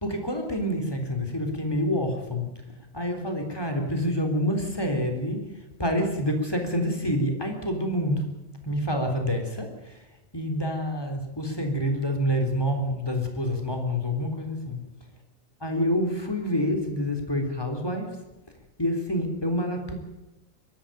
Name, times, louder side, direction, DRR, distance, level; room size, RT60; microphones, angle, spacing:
voice 1, 0.0-2.6 2.9-8.3 8.6-10.0 10.3-14.9 15.6-18.1 18.8-19.9, equal, 5° left, 4 dB, 2.7 m, -27 dB
23.0 x 13.5 x 9.1 m, 1.0 s
omnidirectional pair, 5.3 m